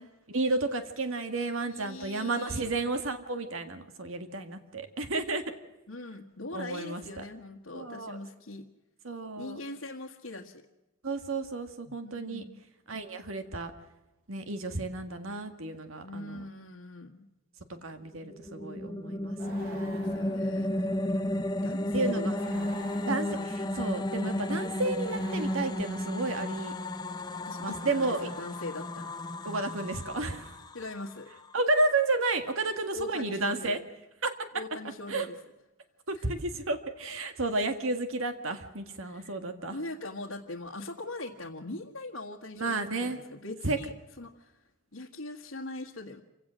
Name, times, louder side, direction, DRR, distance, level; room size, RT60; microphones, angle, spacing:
voice 1, 0.3-5.4 6.5-7.2 7.7-8.2 9.0-9.6 11.0-12.4 12.9-13.7 14.3-16.5 17.7-20.2 20.7-20.9 21.9-22.8 23.1-26.7 27.6-28.3 29.5-30.6 31.5-33.8 34.2-34.5 35.1-35.3 36.1-39.8 42.6-43.2 43.6-43.8, right 2 dB, 70° right, 8 dB, 1.8 m, -32 dB
voice 2, 1.7-2.7 5.9-8.6 9.4-10.6 12.0-12.6 16.0-17.3 19.7-20.8 21.6-22.4 23.3-23.7 27.4-29.1 30.7-31.3 32.9-33.8 34.5-35.4 36.1-36.2 39.0-39.4 39.7-44.6 44.9-46.2, left 2 dB, 80° left, -3 dB, 1.8 m, -41 dB
sound 1, 18.2-31.6, left 1 dB, 20° left, 0.9 m, -33 dB
Angry Man, 19.3-21.1 22.3-23.9 25.0-26.3 27.7-28.8, equal, 45° right, 7.7 m, -48 dB
27.0 x 17.0 x 6.3 m, 1.0 s
head